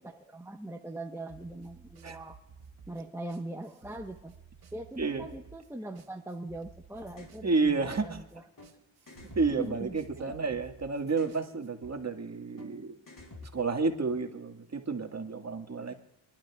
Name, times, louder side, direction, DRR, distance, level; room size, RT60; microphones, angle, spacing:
voice 1, 0.0-2.4 2.9-4.3 4.7-8.4 9.6-10.3 15.8-15.9, right 1 dB, 5° right, 3 dB, 1.0 m, -41 dB
sound 1, 1.3-11.9, right 6 dB, 55° right, 1.8 m, -54 dB
sound 2, 7.1-7.4 8.6-8.7 9.1-10.5 11.1-11.4 12.6-12.7 13.1-14.2, left 2 dB, 45° left, 4.0 m, -49 dB
voice 2, 7.4-8.2 9.4-13.0 13.4-15.9, right 4 dB, 35° right, 5 dB, 1.8 m, -30 dB
26.0 x 12.0 x 2.4 m, 0.87 s
cardioid pair, 65°, 47 cm